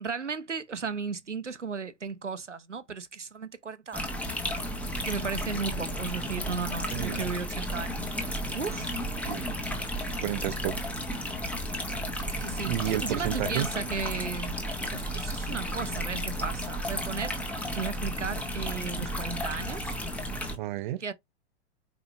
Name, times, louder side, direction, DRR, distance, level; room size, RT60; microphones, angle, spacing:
voice 1, 0.0-4.0 5.0-8.1 8.5-8.9 12.4-14.6 14.9-17.4 17.8-19.9 21.0-21.1, right 5 dB, 90° right, 0.7 m, -35 dB
sound 1, 3.9-20.6, equal, 5° left, 1.1 m, -33 dB
voice 2, 6.9-7.3 9.2-9.5 10.1-10.7 12.6-13.7 20.6-21.0, right 14 dB, 45° right, 0.6 m, -31 dB
5.0 x 4.6 x 2.3 m
figure-of-eight pair, 100°, 35 cm